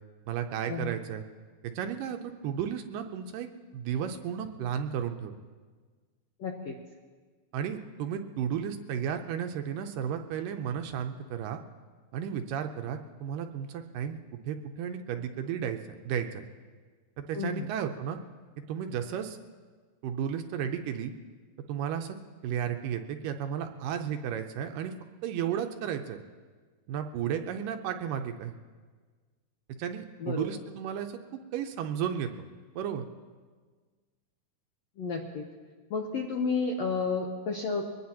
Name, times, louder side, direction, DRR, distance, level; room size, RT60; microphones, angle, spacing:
voice 1, 0.3-1.2 1.6-3.5 3.7-5.3 7.5-11.6 12.1-14.2 14.5-15.8 16.0-16.5 17.2-18.2 18.7-19.4 20.0-21.1 21.7-22.2 22.4-24.9 25.2-26.2 26.9-28.6 29.8-31.2 31.5-32.5 32.8-33.0, right 8 dB, 80° right, 6 dB, 2.2 m, -33 dB
voice 2, 6.4-6.7 17.3-17.7 30.2-30.5 35.0-35.4 35.9-37.8, left 4 dB, 75° left, 1 dB, 1.6 m, -31 dB
23.0 x 19.0 x 2.9 m, 1.5 s
omnidirectional pair, 4.2 m